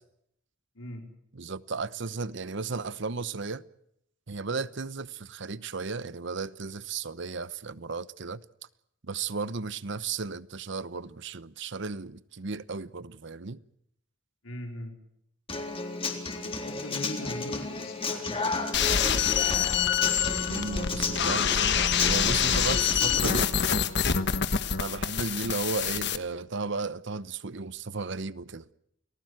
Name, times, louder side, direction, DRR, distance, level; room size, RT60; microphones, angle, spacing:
voice 1, 0.7-1.1 14.4-14.9 16.4-18.7, left 1 dB, 90° left, 4.6 m, -40 dB
voice 2, 1.3-3.6 4.3-8.4 9.0-13.6 20.4-23.5 24.8-28.7, right 4 dB, 60° right, 0.9 m, -34 dB
Human voice / Acoustic guitar, 15.5-23.5, left 3 dB, 30° left, 3.8 m, -32 dB
sound 1, 18.7-26.2, left 7 dB, 60° left, 1.4 m, -26 dB
29.5 x 19.5 x 7.9 m
head